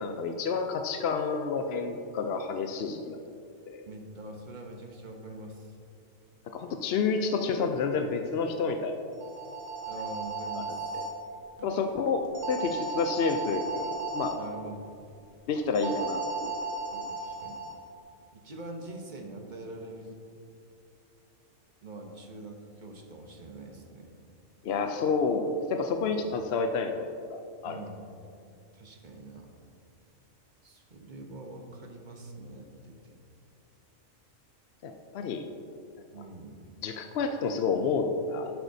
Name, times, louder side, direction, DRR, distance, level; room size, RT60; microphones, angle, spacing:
voice 1, 0.0-3.2 3.7-3.9 6.5-8.9 10.6-10.7 10.9-11.0 11.6-14.3 15.5-16.6 17.0-17.1 24.6-27.8 34.8-35.5 36.8-38.5, left 4 dB, 65° left, 5 dB, 0.7 m, -29 dB
voice 2, 3.8-5.8 9.8-11.1 11.6-11.7 14.3-14.9 16.9-17.6 18.3-20.2 21.8-24.1 26.0-26.2 27.6-28.1 28.7-29.5 30.6-33.1 36.1-36.7, right 2 dB, 40° right, 2 dB, 1.0 m, -44 dB
sound 1, 9.1-11.1 12.3-14.3 15.8-17.7, right 3 dB, 90° right, 1.8 m, -35 dB
12.5 x 8.1 x 2.7 m, 2.5 s
omnidirectional pair, 1.4 m